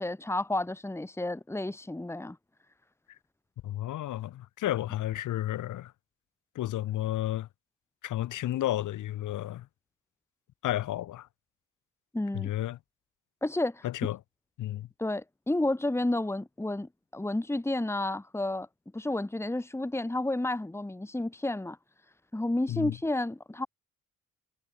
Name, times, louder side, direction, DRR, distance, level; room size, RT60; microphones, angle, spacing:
voice 1, 0.0-2.4 12.1-12.5 13.4-13.8 15.0-18.7 18.9-21.8 22.3-23.7, left 2 dB, 10° left, 2.2 m, -31 dB
voice 2, 3.6-5.9 6.6-7.5 8.0-9.7 10.6-11.3 12.3-12.8 13.8-14.2 14.6-14.9 22.7-23.0, left 13 dB, 80° left, 5.5 m, -32 dB
cardioid pair, 90°, 30 cm